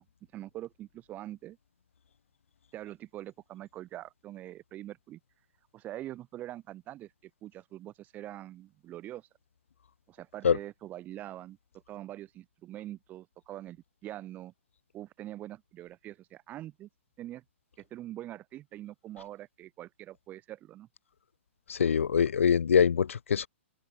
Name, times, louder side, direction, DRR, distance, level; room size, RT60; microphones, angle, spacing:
voice 1, 0.3-1.6 2.7-5.2 5.7-9.3 10.1-11.6 11.9-14.5 14.9-16.9 17.2-17.4 17.8-20.9, right 14 dB, 25° right, 6.6 m, -44 dB
voice 2, 21.7-23.5, left 7 dB, 75° left, 1.1 m, -24 dB
open air
hypercardioid pair, 135°, 7 cm